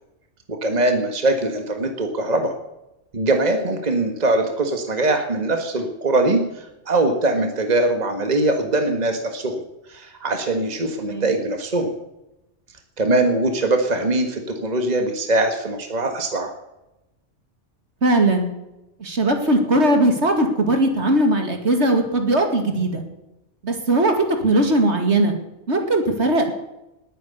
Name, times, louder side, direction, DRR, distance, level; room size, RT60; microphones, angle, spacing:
voice 1, 0.5-2.5 3.1-9.6 9.9-11.9 13.0-16.5, right 2 dB, 35° right, 5 dB, 1.8 m, -22 dB
voice 2, 18.0-18.5 19.0-23.0 23.6-24.1 24.4-25.3 25.7-26.5, right 1 dB, 65° right, 5 dB, 2.5 m, -19 dB
19.5 x 9.3 x 6.9 m, 0.93 s
omnidirectional pair, 1.2 m